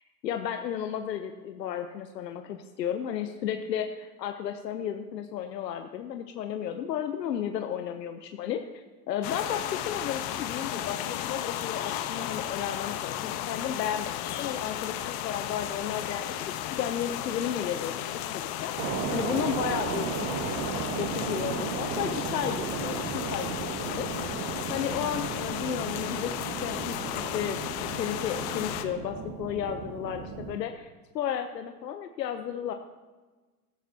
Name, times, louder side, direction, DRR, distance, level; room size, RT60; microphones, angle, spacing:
voice 1, 0.2-11.0 11.3-18.1 18.3-32.7, left 9 dB, 85° left, 7 dB, 0.8 m, -33 dB
sound 1, 9.2-28.8, left 11 dB, 50° left, 1.0 m, -34 dB
sound 2, 18.8-30.6, right 6 dB, 55° right, 1.6 m, -35 dB
15.5 x 13.5 x 2.8 m, 1.3 s
hypercardioid pair, 90°, 48 cm